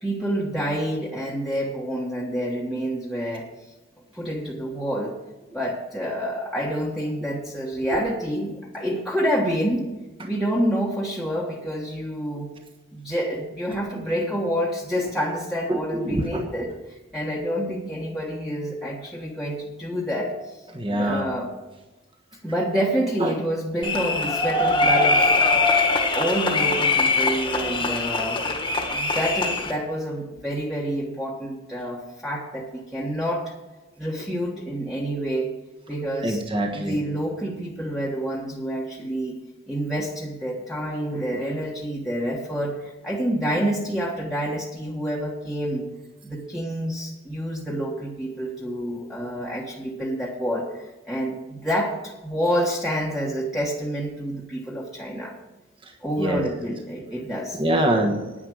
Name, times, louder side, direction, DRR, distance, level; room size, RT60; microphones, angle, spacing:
voice 1, 0.0-3.5 4.1-5.1 5.5-9.9 10.2-12.5 12.9-20.6 20.9-21.5 22.4-25.4 26.1-28.4 28.9-33.5 34.0-35.5 35.9-36.4 36.7-39.4 39.7-45.8 46.2-55.3 56.0-57.6, equal, ahead, -4 dB, 1.3 m, -28 dB
voice 2, 15.7-16.5 20.7-21.3 23.2-23.4 36.2-37.0 55.8-56.4 57.6-58.3, right 1 dB, 25° right, 2 dB, 1.3 m, -25 dB
sound 1, 23.8-29.7, left 3 dB, 25° left, 1.4 m, -22 dB
10.0 x 9.8 x 6.3 m, 1.1 s
head